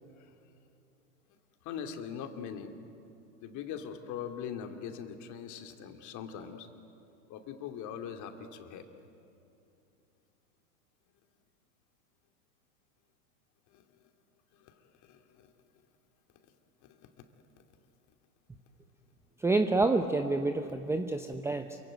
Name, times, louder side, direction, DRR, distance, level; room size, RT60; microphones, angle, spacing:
voice 1, 1.6-2.7 3.4-6.7 7.3-8.8 13.7-13.8 14.5-14.8 15.1-15.5 16.8-17.2, left 8 dB, 40° left, 6 dB, 2.7 m, -41 dB
voice 2, 19.4-21.8, right 3 dB, 5° right, 6 dB, 0.8 m, -28 dB
27.5 x 23.5 x 9.1 m, 2.8 s
hypercardioid pair, 115°, 47 cm